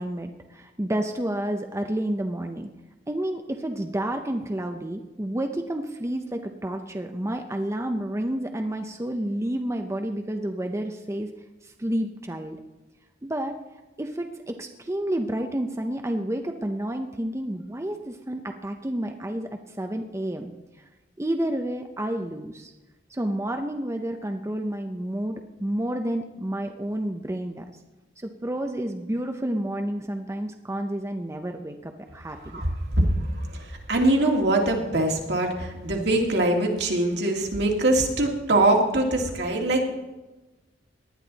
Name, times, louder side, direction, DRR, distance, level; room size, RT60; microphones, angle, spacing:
voice 1, 0.0-2.7 3.1-11.3 11.6-12.6 13.2-13.6 14.0-19.5 19.8-20.5 21.2-22.7 23.1-27.6 28.2-32.6, right 1 dB, 15° right, 4 dB, 0.7 m, -30 dB
voice 2, 32.5-39.9, right 1 dB, 65° right, 1 dB, 2.2 m, -23 dB
18.5 x 10.5 x 4.0 m, 1.1 s
head